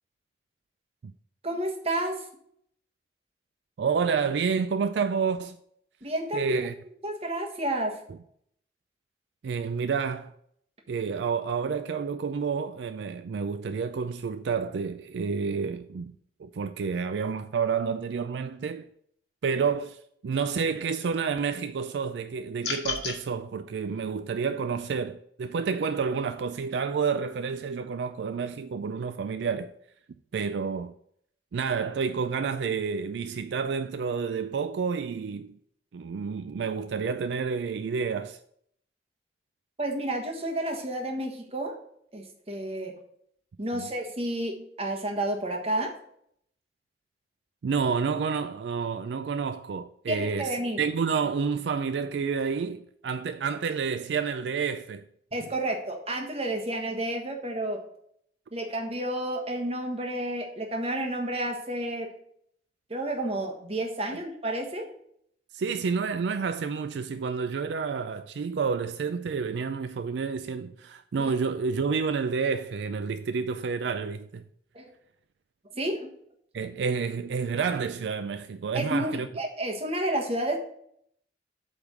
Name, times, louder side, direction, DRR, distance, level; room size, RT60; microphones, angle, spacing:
voice 1, 1.4-2.2 6.0-6.6 7.0-8.0 39.8-41.7 42.1-42.9 43.6-45.9 50.1-50.8 55.3-57.8 58.5-62.1 62.9-64.9 71.2-71.3 74.7-74.9 75.7-76.1 78.7-80.6, right 1 dB, 35° right, 1.3 m, -30 dB
voice 2, 3.8-5.6 6.3-6.7 9.4-10.3 10.9-16.1 16.4-18.9 19.4-29.7 30.3-30.9 31.5-35.6 35.9-38.4 43.7-43.9 47.6-55.1 64.1-64.2 65.5-74.4 76.5-79.3, right 5 dB, 75° right, 0.4 m, -29 dB
audio parcial finalisimo final freeze masticar, 22.6-23.2, left 5 dB, 90° left, 1.5 m, -31 dB
8.2 x 3.6 x 6.1 m
head